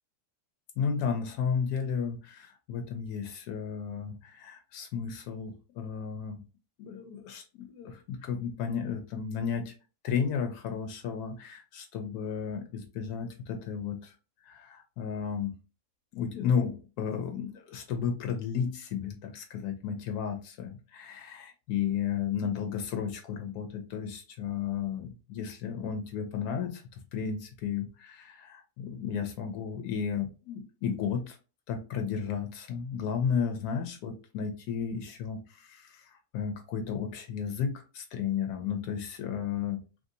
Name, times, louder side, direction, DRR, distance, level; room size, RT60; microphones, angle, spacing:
voice 1, 0.8-6.4 6.8-9.7 10.0-14.2 14.4-15.5 16.1-31.4 31.7-39.8, left 7 dB, 85° left, 4 dB, 1.1 m, -33 dB
3.2 x 2.7 x 2.5 m, 0.32 s
omnidirectional pair, 1.6 m